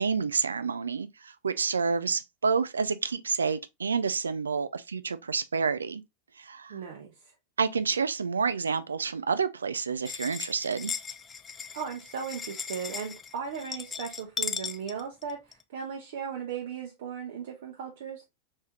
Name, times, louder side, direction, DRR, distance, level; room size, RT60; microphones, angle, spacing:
voice 1, 0.0-6.0 6.4-6.8 7.6-10.9, right 5 dB, 75° right, 0.3 m, -29 dB
voice 2, 6.7-7.1 11.7-18.2, right 7 dB, 55° right, 0.7 m, -37 dB
sound 1, 10.0-15.6, left 6 dB, 20° left, 0.3 m, -37 dB
3.3 x 3.2 x 2.8 m
figure-of-eight pair, 90°, 0 cm